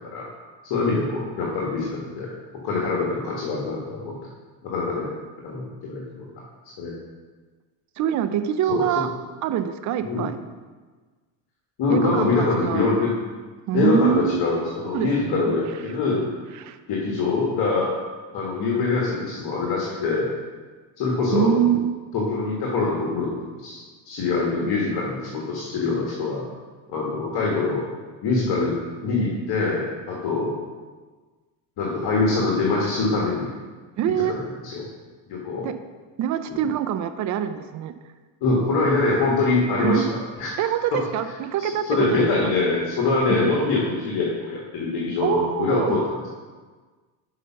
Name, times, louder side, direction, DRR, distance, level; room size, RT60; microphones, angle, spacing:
voice 1, 0.6-2.3 2.6-4.2 4.6-5.1 5.4-6.3 6.8-6.9 8.7-9.0 10.0-10.3 11.8-13.1 13.7-16.2 16.9-18.0 18.3-20.3 21.0-21.6 22.1-23.3 23.6-23.8 24.1-26.4 26.9-27.8 28.2-28.8 29.0-30.5 31.8-33.5 34.3-34.8 35.3-35.7 36.5-36.6 38.4-40.5 40.9-41.0 41.6-46.0, left 3 dB, 50° left, -4 dB, 1.7 m, -24 dB
voice 2, 8.0-9.1 9.4-10.4 11.9-13.0 13.7-14.4 14.9-15.5 16.5-16.8 21.3-21.9 34.0-34.3 35.6-35.7 36.2-37.9 39.8-40.1 40.6-42.5 43.1-43.5 45.2-46.0, right 9 dB, 40° right, 10 dB, 0.5 m, -24 dB
6.6 x 5.0 x 5.7 m, 1.4 s
supercardioid pair, 110°, 47 cm